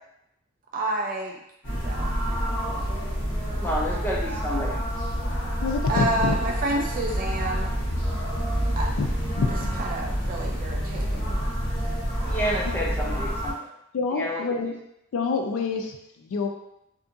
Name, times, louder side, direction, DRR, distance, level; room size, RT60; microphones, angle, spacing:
voice 1, 0.7-1.4 1.8-2.8 5.9-7.7 8.8-9.0 9.8-11.4, right 2 dB, 40° right, 0 dB, 0.3 m, -30 dB
sound 1, 1.6-13.5, equal, 45° left, 1.0 m, -28 dB
voice 2, 3.5-4.8 12.3-13.7 14.1-14.4, equal, 10° left, -4 dB, 0.5 m, -29 dB
voice 3, 5.6-6.4 9.0-9.1 9.4-9.8 12.7-12.8 13.9-14.8 15.1-16.5, left 4 dB, 85° left, 3 dB, 0.4 m, -27 dB
2.6 x 2.5 x 2.5 m, 0.80 s
head